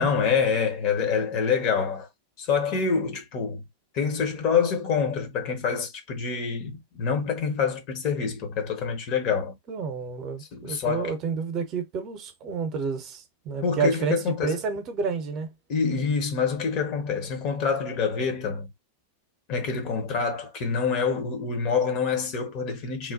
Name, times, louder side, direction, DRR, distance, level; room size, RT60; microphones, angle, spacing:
voice 1, 0.0-2.1 2.4-3.6 3.9-9.6 10.5-11.1 13.6-14.6 15.7-18.7 19.5-23.1, left 6 dB, 40° left, 0.9 m, -26 dB
voice 2, 9.7-15.5, right 5 dB, 35° right, 0.8 m, -30 dB
3.1 x 2.2 x 2.7 m
figure-of-eight pair, 90°, 0 cm